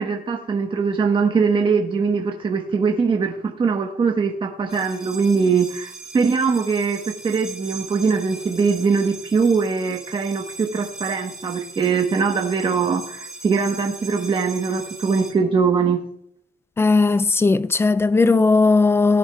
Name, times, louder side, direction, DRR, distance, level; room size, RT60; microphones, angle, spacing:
voice 1, 0.0-16.0, right 5 dB, 30° right, 1.1 m, -21 dB
sound 1, 4.7-15.3, right 4 dB, 5° right, 3.4 m, -39 dB
voice 2, 16.8-19.2, left 3 dB, 15° left, 0.3 m, -17 dB
18.0 x 9.1 x 2.3 m
cardioid pair, 110°, 17 cm